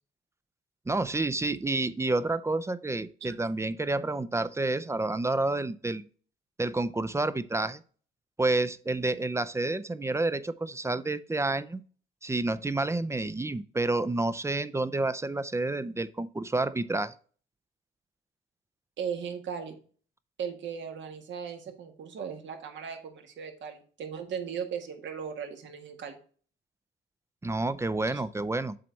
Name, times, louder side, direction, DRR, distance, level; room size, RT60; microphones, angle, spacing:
voice 1, 0.9-6.0 6.6-7.8 8.4-11.8 12.2-17.1 27.4-28.8, right 2 dB, 15° right, 15 dB, 0.5 m, -29 dB
voice 2, 19.0-19.8 20.4-26.2 28.1-28.2, right 7 dB, 70° right, 4 dB, 1.7 m, -37 dB
7.6 x 4.1 x 4.5 m, 0.42 s
cardioid pair, 90°, 20 cm